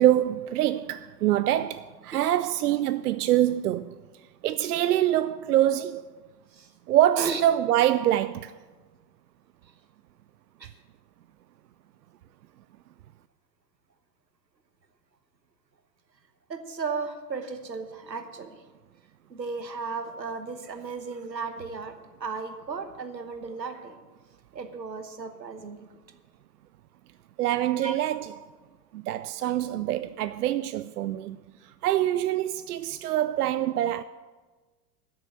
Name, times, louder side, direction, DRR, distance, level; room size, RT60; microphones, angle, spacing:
voice 1, 0.0-3.9 4.4-6.0 6.9-8.5 27.4-28.3 28.9-31.4 31.8-34.0, right 12 dB, 70° right, 0.5 m, -25 dB
voice 2, 16.5-18.6 19.3-21.9 22.2-24.0 24.5-25.8 27.8-28.0 29.5-29.6, right 5 dB, 90° right, 1.2 m, -35 dB
12.0 x 6.7 x 7.9 m
figure-of-eight pair, 90°, 49 cm